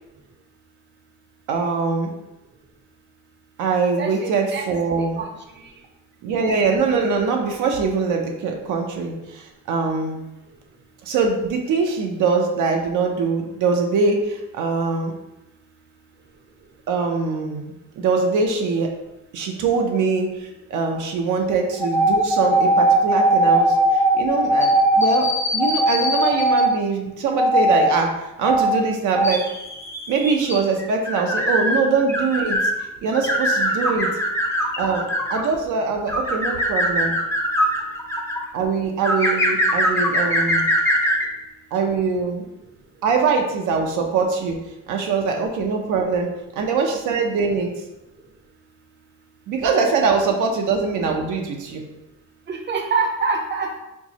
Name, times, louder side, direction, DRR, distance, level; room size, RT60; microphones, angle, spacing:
voice 1, 1.5-2.1 3.6-5.2 6.2-10.2 11.0-15.1 16.9-18.9 19.3-29.4 30.1-32.7 33.0-34.1 34.8-37.2 38.5-40.7 41.7-42.4 43.0-44.6 44.9-47.7 49.5-51.8, right 4 dB, 80° right, 2 dB, 0.6 m, -23 dB
voice 2, 4.0-4.6 5.0-5.7 52.5-53.8, right 4 dB, 40° right, 3 dB, 0.6 m, -26 dB
sound 1, 21.7-26.7 27.4-27.9 28.4-28.8 29.1-32.7 33.1-35.5 36.1-38.4 39.0-41.3, equal, 10° left, 0.5 m, -20 dB
4.3 x 2.0 x 2.8 m, 0.92 s
cardioid pair, 90°, 30 cm